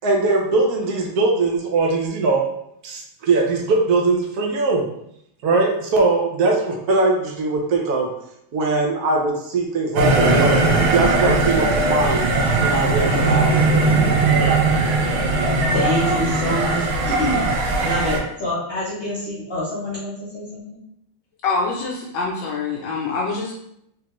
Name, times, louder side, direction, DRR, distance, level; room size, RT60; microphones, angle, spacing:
voice 1, 0.0-2.4 2.8-4.8 5.4-8.1 8.5-12.2 12.6-14.2, right 3 dB, 65° right, 0 dB, 1.0 m, -21 dB
sound 1, 10.0-18.2, right 3 dB, 85° right, 1.6 m, -19 dB
voice 2, 15.7-20.8, left 1 dB, 35° left, -9 dB, 1.0 m, -26 dB
voice 3, 21.4-23.5, left 4 dB, 70° left, -2 dB, 1.2 m, -25 dB
3.6 x 3.1 x 3.0 m, 0.76 s
omnidirectional pair, 2.3 m